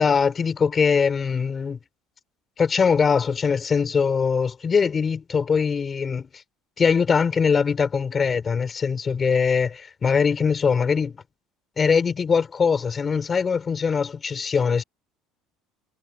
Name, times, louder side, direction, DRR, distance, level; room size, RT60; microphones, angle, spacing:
voice 1, 0.0-1.8 2.6-6.3 6.8-11.2 11.8-14.8, left 6 dB, 25° left, 4.2 m, -22 dB
cardioid pair, 150°, 0 cm